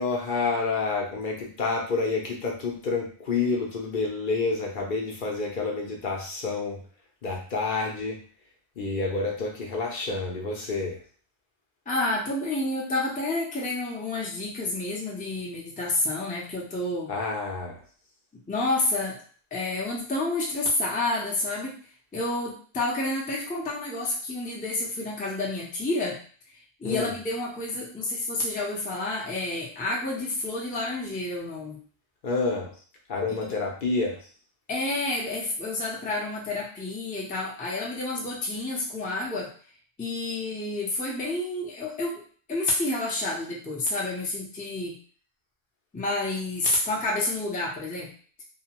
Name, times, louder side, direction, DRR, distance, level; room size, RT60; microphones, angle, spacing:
voice 1, 0.0-6.8 7.2-8.2 8.8-11.0 17.1-17.8 26.8-27.1 32.2-32.7 33.1-34.3, left 3 dB, 55° left, -1 dB, 0.7 m, -28 dB
voice 2, 11.9-17.1 18.5-19.2 19.5-21.8 22.1-26.2 26.8-31.8 34.7-39.5 40.0-42.2 42.5-45.0 45.9-48.1, left 2 dB, 10° left, -3 dB, 0.4 m, -29 dB
2.7 x 2.1 x 2.8 m, 0.44 s
omnidirectional pair, 1.1 m